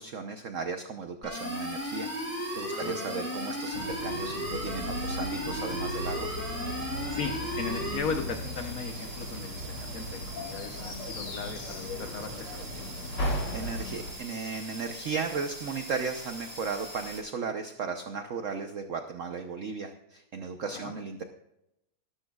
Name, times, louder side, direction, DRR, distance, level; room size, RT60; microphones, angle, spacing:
voice 1, 0.0-6.3 13.1-21.2, right 5 dB, 60° right, 6 dB, 0.8 m, -35 dB
sound 1, 1.2-8.0, left 1 dB, 5° left, 3.0 m, -35 dB
sound 2, 1.3-17.2, right 1 dB, 90° right, 4.9 m, -44 dB
voice 2, 2.7-3.1 7.1-12.9 20.7-20.9, left 5 dB, 55° left, 5 dB, 1.1 m, -37 dB
sound 3, 3.7-14.1, equal, 85° left, 3.3 m, -37 dB
19.0 x 11.5 x 2.4 m, 0.84 s
omnidirectional pair, 2.3 m